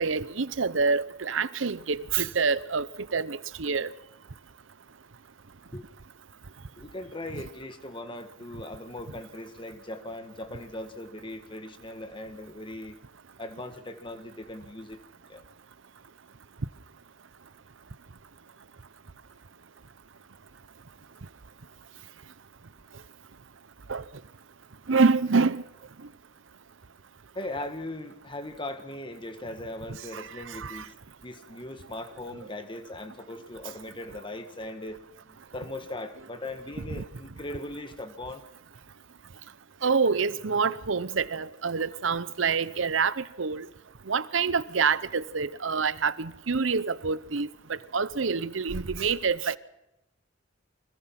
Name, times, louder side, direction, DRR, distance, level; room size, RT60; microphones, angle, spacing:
voice 1, 0.0-2.9 3.1-3.9 23.9-24.0 24.9-25.6 30.1-30.8 36.9-37.0 39.8-43.7 44.1-49.6, right 5 dB, 80° right, 0.8 m, -27 dB
voice 2, 6.8-13.0 13.4-15.0 15.3-15.4 27.3-30.9 31.2-38.4, left 1 dB, 25° left, 1.7 m, -39 dB
25.5 x 20.0 x 6.0 m
head